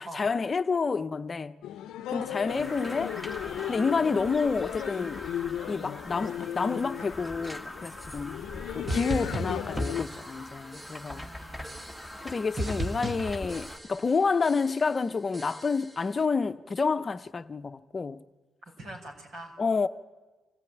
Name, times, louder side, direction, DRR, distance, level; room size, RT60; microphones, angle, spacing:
voice 1, 0.0-1.5 2.1-3.1 3.7-5.2 5.7-8.3 8.7-11.3 12.2-18.2 19.6-19.9, left 4 dB, 35° left, 0.7 m, -29 dB
sound 1, 1.6-10.0, left 11 dB, 85° left, 0.6 m, -36 dB
sound 2, 2.5-13.8, left 1 dB, ahead, 1.5 m, -41 dB
sound 3, 8.9-10.5 10.7-11.2 11.6-12.3 12.6-14.2 14.4-14.9 15.3-16.0, right 1 dB, 20° right, 1.4 m, -37 dB
voice 2, 11.1-11.9 18.6-19.5, right 1 dB, 70° right, 5.9 m, -44 dB
25.0 x 15.5 x 9.2 m
cardioid pair, 90°, 0 cm